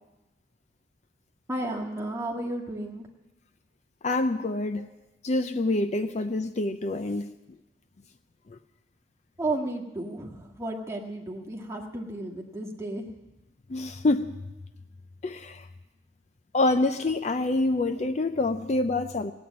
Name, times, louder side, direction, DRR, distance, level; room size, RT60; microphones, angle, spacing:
voice 1, 1.5-3.1 9.4-13.1, right 2 dB, 15° right, 0 dB, 1.7 m, -33 dB
voice 2, 4.0-4.9 5.2-7.3 13.7-14.3 15.2-15.6 16.5-19.3, left 2 dB, 35° left, 9 dB, 0.4 m, -26 dB
17.0 x 8.7 x 9.4 m, 1.0 s
head